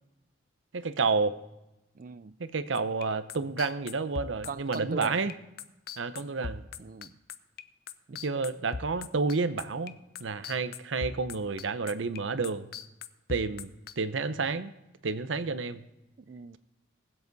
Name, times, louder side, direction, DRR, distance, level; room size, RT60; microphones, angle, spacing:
voice 1, 0.7-1.3 2.4-5.3 6.0-6.6 8.2-12.7 13.3-13.7 14.0-14.7 15.0-15.8, right 4 dB, 80° right, 12 dB, 0.7 m, -30 dB
voice 2, 1.9-2.3 4.4-5.2 6.8-7.2 8.1-8.4 16.3-16.6, right 4 dB, 45° right, 17 dB, 0.4 m, -40 dB
sound 1, 2.7-9.9 10.2-13.9, left 5 dB, 50° left, 0.5 m, -39 dB
20.5 x 7.9 x 4.0 m, 0.94 s
head